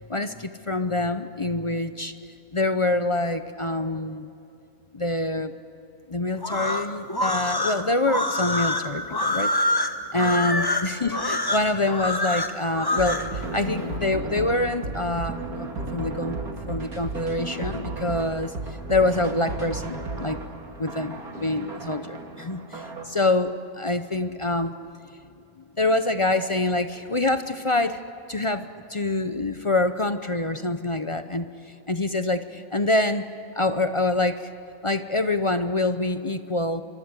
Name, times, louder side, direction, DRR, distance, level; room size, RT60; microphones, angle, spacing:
voice 1, 0.1-4.3 4.9-5.5 6.1-9.5 10.1-16.4 16.7-20.4 20.8-24.7 25.8-28.0 28.3-31.5 31.9-33.2 33.5-34.5 34.8-36.8, left 2 dB, 35° left, 10 dB, 0.5 m, -26 dB
sound 1, 6.4-13.3, left 1 dB, 15° left, 1.3 m, -25 dB
sound 2, 12.9-23.1, right 3 dB, 90° right, 2.8 m, -34 dB
25.0 x 24.5 x 8.2 m, 2.7 s
omnidirectional pair, 1.5 m